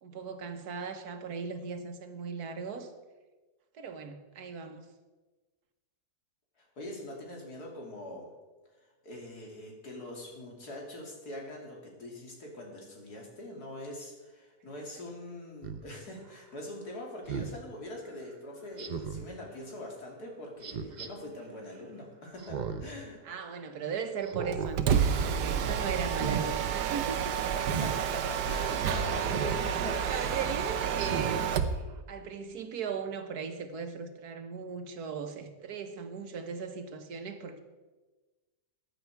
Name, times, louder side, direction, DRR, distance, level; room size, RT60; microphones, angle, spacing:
voice 1, 0.0-2.9 3.7-4.9 23.2-27.5 30.1-31.5 32.1-37.6, right 6 dB, 70° right, 7 dB, 1.6 m, -38 dB
voice 2, 6.6-8.3 8.7-23.2 27.6-30.4, left 1 dB, 70° left, -1 dB, 3.2 m, -43 dB
Speech synthesizer, 15.6-15.8 17.3-17.6 18.8-19.3 20.6-21.1 22.4-22.9 23.3-23.4 24.2-24.7 25.1-25.4 26.1-26.5 27.7-28.0 29.3-29.7 30.1-30.3 30.9-31.4 31.9-32.0, right 6 dB, 45° right, 0.6 m, -35 dB
Mechanisms, 24.5-31.8, right 8 dB, 90° right, 1.4 m, -30 dB
14.5 x 10.0 x 4.6 m, 1.2 s
omnidirectional pair, 1.7 m